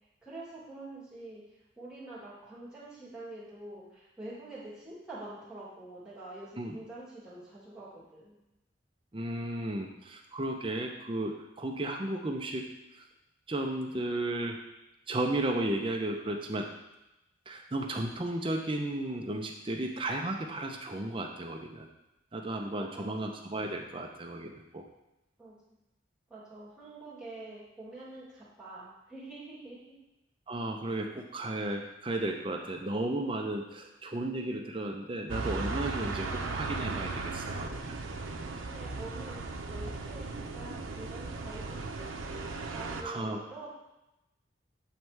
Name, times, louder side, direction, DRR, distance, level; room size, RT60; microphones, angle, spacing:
voice 1, 0.2-1.4 1.8-8.4 22.7-23.3 25.4-25.5 26.3-29.9 38.6-42.1 42.3-43.7, right 2 dB, 5° right, -10 dB, 1.9 m, -46 dB
voice 2, 9.1-12.7 13.0-13.1 13.5-14.6 15.1-16.7 17.5-21.9 22.3-24.8 30.5-37.9 43.0-43.4, right 1 dB, 25° right, 2 dB, 0.6 m, -34 dB
sound 1, 35.3-43.0, right 3 dB, 90° right, 0.6 m, -37 dB
8.0 x 3.2 x 4.6 m, 0.94 s
head